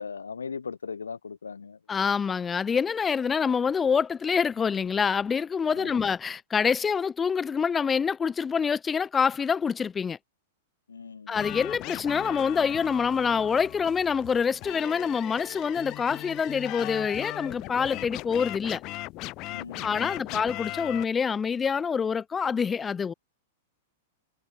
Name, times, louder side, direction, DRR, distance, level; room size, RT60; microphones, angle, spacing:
voice 1, 0.0-1.8 5.7-6.1 10.9-11.4 19.5-20.4, left 5 dB, 85° left, 0.8 m, -39 dB
voice 2, 1.9-10.2 11.3-18.8 19.8-23.1, left 6 dB, 20° left, 0.3 m, -26 dB
sound 1, 11.3-21.0, left 20 dB, 40° left, 3.4 m, -38 dB
hypercardioid pair, 100°, 0 cm